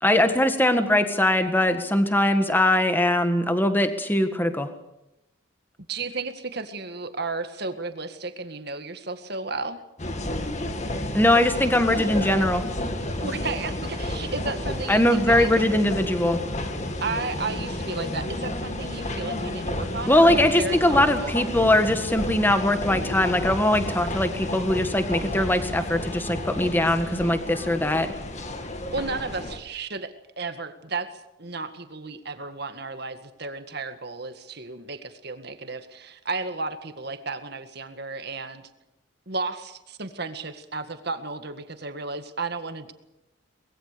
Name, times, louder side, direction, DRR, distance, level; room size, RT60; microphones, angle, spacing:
voice 1, 0.0-4.7 11.1-12.6 14.9-16.4 20.1-28.1, left 1 dB, 10° left, 8 dB, 1.7 m, -21 dB
voice 2, 5.9-9.8 13.2-15.7 17.0-21.3 28.9-31.1 31.4-38.6 39.3-42.9, right 3 dB, 50° right, 8 dB, 1.9 m, -33 dB
sound 1, 10.0-29.6, left 1 dB, 35° left, 2.1 m, -31 dB
24.0 x 21.0 x 6.9 m, 0.88 s
head